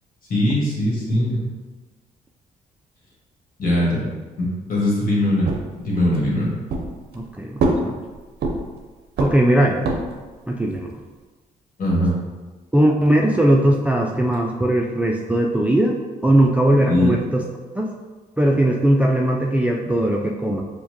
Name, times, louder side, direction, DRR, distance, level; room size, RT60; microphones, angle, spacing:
voice 1, 0.3-1.4 3.6-4.1 4.4-5.5 5.8-6.5 11.8-12.1 16.8-17.1, left 1 dB, 50° left, -5 dB, 1.5 m, -20 dB
sound 1, 5.4-6.3 6.7-7.3 7.6-8.8 9.2-10.3, right 3 dB, 60° right, 0.6 m, -24 dB
voice 2, 7.1-8.0 9.2-9.8 10.5-10.9 12.7-16.0 16.2-17.4 17.8-17.9 18.4-20.6, right 1 dB, 5° right, -1 dB, 0.3 m, -19 dB
4.4 x 2.2 x 2.8 m, 1.3 s
hypercardioid pair, 50°, 19 cm